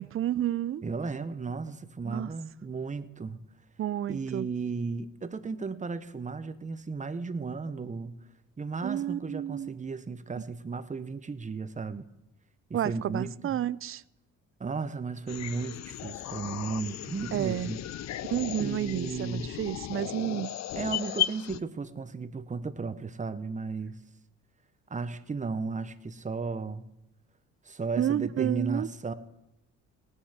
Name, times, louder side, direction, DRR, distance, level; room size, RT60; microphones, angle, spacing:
voice 1, 0.0-0.8 2.0-2.3 3.8-4.5 8.8-9.8 10.4-10.5 12.7-14.0 17.3-17.7 18.3-20.5 28.0-28.9, right 12 dB, 40° right, 20 dB, 0.4 m, -31 dB
voice 2, 0.8-3.4 4.1-8.2 8.6-12.0 12.7-13.6 14.6-17.8 18.6-19.5 20.7-24.0 24.9-26.9 27.6-29.1, right 4 dB, 20° right, 12 dB, 0.8 m, -35 dB
sound 1, 15.3-21.6, left 12 dB, 55° left, 0.5 m, -35 dB
18.0 x 7.4 x 4.8 m, 0.89 s
cardioid pair, 80°, 34 cm